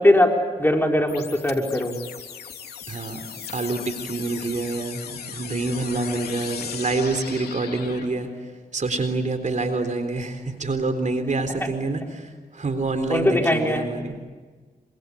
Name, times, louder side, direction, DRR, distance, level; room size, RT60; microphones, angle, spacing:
voice 1, 0.0-1.9 13.1-13.9, left 1 dB, 15° left, 2 dB, 4.6 m, -20 dB
sound 1, 1.1-8.1, left 7 dB, 85° left, 3.3 m, -37 dB
voice 2, 2.9-8.3 8.7-14.3, right 3 dB, 50° right, 8 dB, 3.8 m, -27 dB
27.5 x 25.0 x 8.6 m, 1.4 s
cardioid pair, 50°, 16 cm